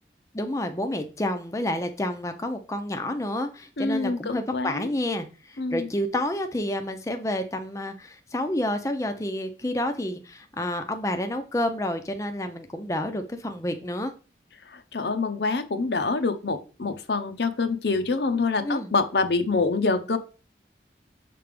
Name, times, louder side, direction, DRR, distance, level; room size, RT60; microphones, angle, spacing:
voice 1, 0.3-14.1 18.6-18.9, left 1 dB, 15° left, 6 dB, 0.6 m, -29 dB
voice 2, 3.8-4.9 5.6-5.9 14.7-20.2, left 3 dB, 75° left, 9 dB, 0.8 m, -26 dB
6.8 x 3.4 x 5.1 m, 0.35 s
head